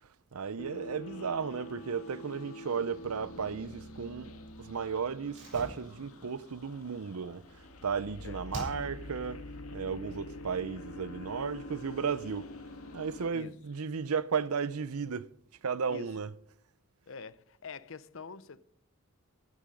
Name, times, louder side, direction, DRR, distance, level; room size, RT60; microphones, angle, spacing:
voice 1, 0.3-7.4 7.8-9.4 9.7-12.5 12.9-15.3 15.6-16.3, right 6 dB, 90° right, 0.6 m, -34 dB
sound 1, 0.6-13.3, left 1 dB, 85° left, 2.0 m, -46 dB
Slam, 5.3-8.0 8.5-9.3 9.5-9.6, equal, 55° right, 7.4 m, -45 dB
voice 2, 17.1-18.6, left 5 dB, 60° left, 0.7 m, -46 dB
16.0 x 9.8 x 5.2 m
head